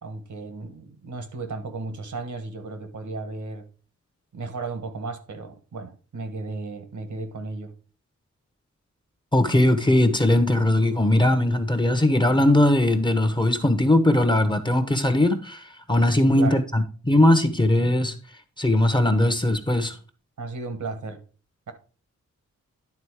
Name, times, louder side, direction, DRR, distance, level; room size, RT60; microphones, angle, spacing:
voice 1, 0.0-3.7 4.3-7.7 16.1-16.6 20.4-21.2, right 3 dB, 75° right, 1.4 m, -34 dB
voice 2, 9.3-18.2 18.6-20.0, left 1 dB, 15° left, 1.0 m, -20 dB
10.5 x 3.9 x 4.9 m
wide cardioid pair, 100°, 30 cm